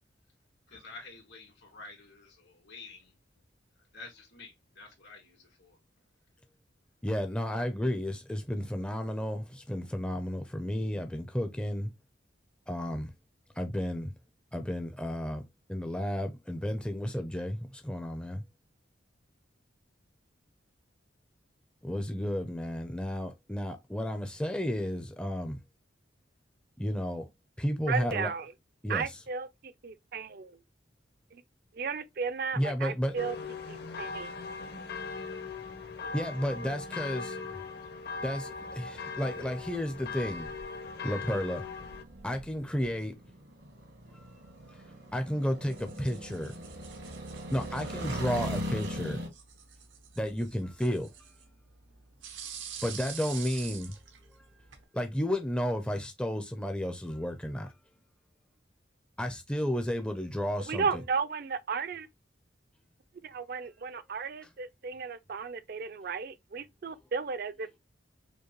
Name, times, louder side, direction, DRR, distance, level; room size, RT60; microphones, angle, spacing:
voice 1, 0.7-3.1 3.9-5.8, left 3 dB, 75° left, 2.0 m, -49 dB
voice 2, 7.0-11.9 12.7-13.1 13.6-14.1 14.5-15.4 15.7-18.4 21.8-25.6 26.8-27.3 27.6-28.3 28.8-29.0 32.6-33.2 36.1-37.4 38.2-40.5 40.8-41.7 42.2-43.2 44.1-44.3 44.7-44.8 45.1-46.5 47.5-49.2 50.2-51.1 52.8-54.0 54.9-57.7 59.2-61.0, equal, 5° left, 0.4 m, -32 dB
voice 3, 27.9-28.5 28.9-30.6 31.3-31.4 31.7-33.3 33.7-34.3 36.0-36.1 60.6-62.1 63.2-67.8, right 5 dB, 55° right, 0.4 m, -34 dB
sound 1, 33.2-42.0, left 4 dB, 55° left, 0.7 m, -40 dB
sound 2, 33.5-49.3, equal, 75° right, 1.3 m, -42 dB
sound 3, 45.6-54.8, right 8 dB, 90° right, 0.9 m, -47 dB
5.1 x 2.2 x 2.9 m
head